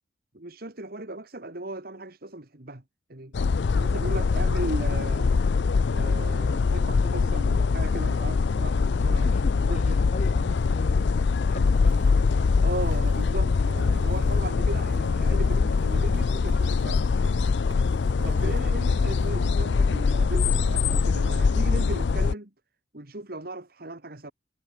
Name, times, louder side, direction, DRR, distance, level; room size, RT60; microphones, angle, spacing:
voice 1, 0.3-2.8 3.1-3.3 3.7-5.3 5.9-9.3 9.7-10.0 12.6-17.1 18.2-22.5 22.9-24.3, right 2 dB, 50° right, 2.1 m, -37 dB
sound 1, 3.3-22.3, left 4 dB, 65° left, 0.4 m, -23 dB
voice 2, 8.9-12.7 14.1-14.4 18.2-18.6, left 1 dB, 40° left, 6.0 m, -42 dB
sound 2, 10.7-11.3 11.6-14.4 14.7-18.6 19.0-19.3, right 2 dB, 80° right, 6.9 m, -49 dB
head